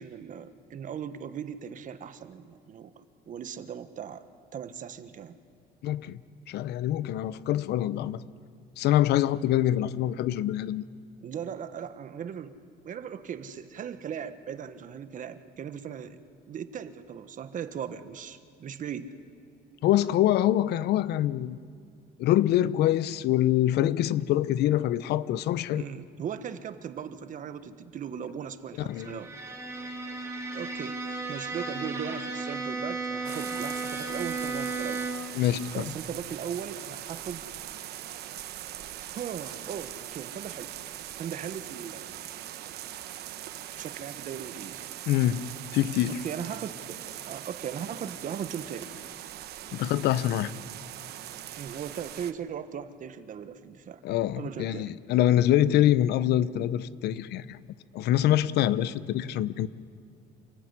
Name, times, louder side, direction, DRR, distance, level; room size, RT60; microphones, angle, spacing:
voice 1, 0.0-4.2 4.5-5.4 11.2-12.5 12.8-16.2 16.5-19.1 25.7-29.3 30.5-35.1 35.7-37.4 39.1-40.7 41.2-42.2 43.8-44.9 46.1-49.0 51.6-54.0 54.3-54.9, right 8 dB, 50° right, 11 dB, 1.4 m, -38 dB
voice 2, 5.8-6.2 6.5-8.2 8.8-10.8 19.8-21.6 22.2-25.8 28.9-29.2 35.3-35.9 45.1-46.2 49.7-50.5 54.0-57.6 57.9-59.7, left 12 dB, 75° left, 17 dB, 0.8 m, -25 dB
Bowed string instrument, 28.9-35.4, right 3 dB, 15° right, 4.1 m, -34 dB
sound 1, 33.2-52.3, right 12 dB, 70° right, 1.2 m, -41 dB
27.5 x 16.0 x 9.8 m, 2.2 s
cardioid pair, 110°, 17 cm